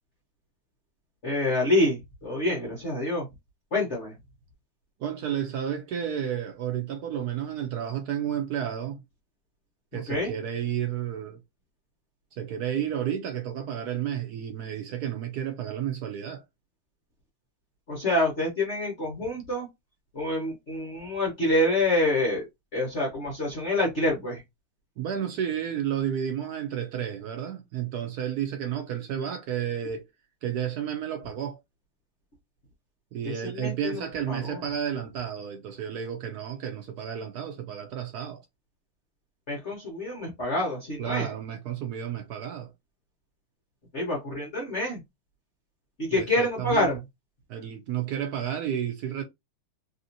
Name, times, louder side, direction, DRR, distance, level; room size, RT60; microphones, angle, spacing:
voice 1, 1.2-3.3 3.7-4.1 9.9-10.3 17.9-19.7 20.1-22.5 22.7-24.4 33.4-34.6 39.5-41.3 43.9-45.0 46.0-47.0, left 1 dB, 40° left, 1.1 m, -27 dB
voice 2, 5.0-9.0 9.9-11.4 12.3-16.4 25.0-30.1 30.4-31.6 33.1-38.4 41.0-42.7 46.2-46.9 47.5-49.2, right 9 dB, 80° right, 0.8 m, -31 dB
3.4 x 2.7 x 2.6 m
omnidirectional pair, 2.3 m